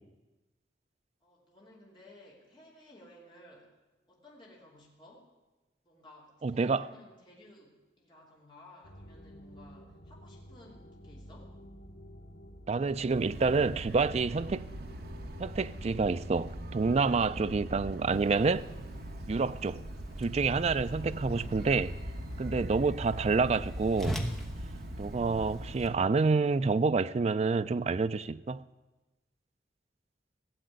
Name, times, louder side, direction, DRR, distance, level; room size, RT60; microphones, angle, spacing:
voice 1, 1.2-3.7 4.1-5.3 5.8-11.5, left 1 dB, 25° left, 2.8 m, -56 dB
voice 2, 6.4-6.9 12.7-14.6 15.4-18.7 19.3-19.8 20.2-22.0 22.4-24.2 25.0-28.6, right 4 dB, 35° right, 0.4 m, -28 dB
sound 1, 8.8-22.8, equal, 85° left, 1.7 m, -51 dB
sound 2, 13.0-26.0, equal, 60° right, 1.2 m, -41 dB
Whoosh swoosh swish, 18.1-25.9, equal, ahead, 1.1 m, -43 dB
16.5 x 7.6 x 9.3 m
head